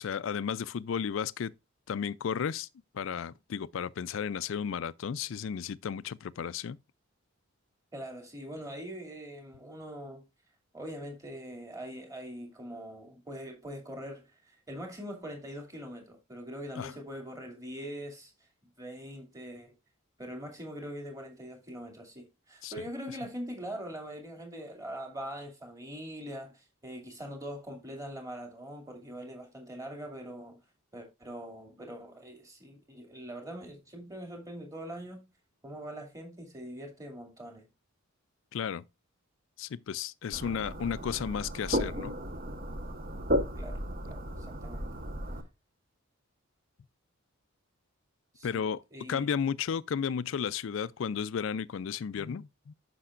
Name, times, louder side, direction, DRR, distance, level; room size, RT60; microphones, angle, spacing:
voice 1, 0.0-1.5 1.9-2.7 2.9-6.8 16.7-16.9 22.6-22.7 38.5-38.8 39.6-42.1 48.4-48.8 49.1-52.7, left 7 dB, 60° left, 0.4 m, -33 dB
voice 2, 7.9-10.2 10.7-18.3 18.8-19.7 20.2-30.6 30.9-35.2 35.6-37.7 43.6-43.8 44.0-44.8 48.3-48.6 48.9-49.3, equal, 15° right, 2.4 m, -42 dB
sound 1, 40.3-45.4, equal, 40° right, 1.2 m, -34 dB
9.9 x 6.8 x 2.5 m
head